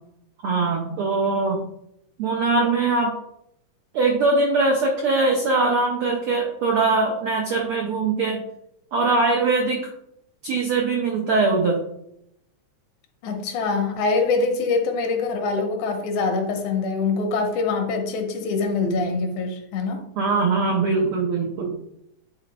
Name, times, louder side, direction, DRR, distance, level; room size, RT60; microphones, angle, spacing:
voice 1, 0.4-1.6 2.2-3.2 3.9-8.4 8.9-9.9 10.4-11.8 20.2-21.7, right 3 dB, 80° right, 1 dB, 1.2 m, -21 dB
voice 2, 13.2-20.0, left 4 dB, 75° left, 5 dB, 2.2 m, -24 dB
9.4 x 3.3 x 4.1 m, 0.78 s
omnidirectional pair, 3.6 m